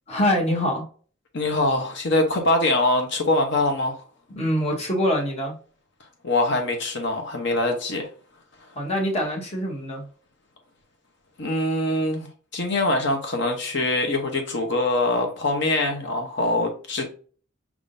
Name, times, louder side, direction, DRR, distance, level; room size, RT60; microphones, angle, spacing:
voice 1, 0.1-0.8 4.4-5.5 8.7-10.0, equal, 35° left, 1.3 m, -24 dB
voice 2, 1.3-4.0 6.2-8.1 11.4-12.3 12.5-17.1, left 2 dB, 60° left, 0.9 m, -23 dB
4.8 x 3.6 x 2.6 m
head